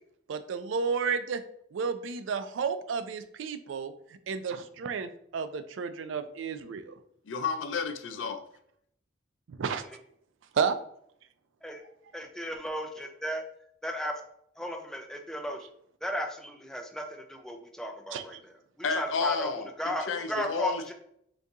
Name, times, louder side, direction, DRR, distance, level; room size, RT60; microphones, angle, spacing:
voice 1, 0.3-1.4 1.7-3.9 4.3-6.9 9.5-9.8 10.5-10.8 18.1-18.4, right 6 dB, 90° right, 11 dB, 0.4 m, -32 dB
voice 2, 7.3-8.4 18.8-20.9, left 5 dB, 90° left, 8 dB, 0.5 m, -31 dB
voice 3, 12.1-13.4 13.8-14.1 14.6-15.6 16.0-18.4 18.9-19.5 19.8-20.9, equal, 5° left, 3 dB, 0.4 m, -35 dB
3.9 x 2.8 x 3.5 m, 0.70 s
head